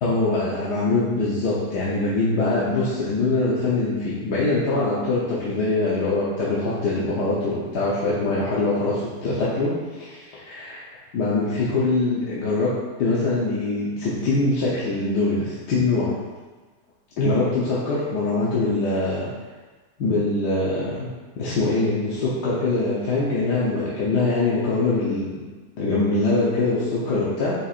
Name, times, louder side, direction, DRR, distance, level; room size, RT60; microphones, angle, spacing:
voice 1, 0.0-10.8 11.1-12.7 13.0-16.1 17.2-19.3 20.0-21.1 21.4-25.4 25.8-27.5, left 2 dB, 75° left, -8 dB, 1.6 m, -23 dB
8.5 x 4.6 x 2.5 m, 1.3 s
omnidirectional pair, 1.8 m